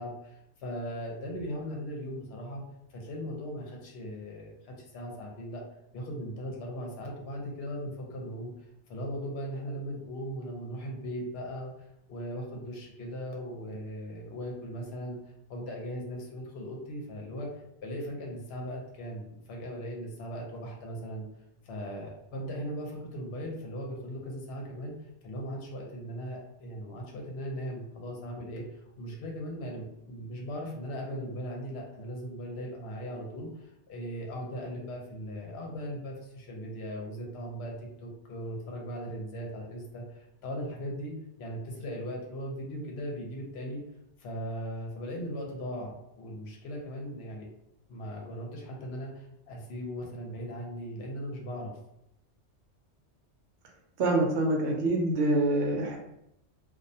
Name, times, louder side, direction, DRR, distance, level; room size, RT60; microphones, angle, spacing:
voice 1, 0.0-2.6 2.9-5.6 5.9-15.2 15.5-17.5 17.8-21.2 21.6-24.9 25.2-43.8 44.2-47.5 47.9-51.7, equal, 65° left, 0 dB, 0.8 m, -38 dB
voice 2, 54.0-56.0, right 2 dB, 75° right, 0 dB, 0.9 m, -26 dB
2.3 x 2.1 x 2.6 m, 0.80 s
omnidirectional pair, 1.2 m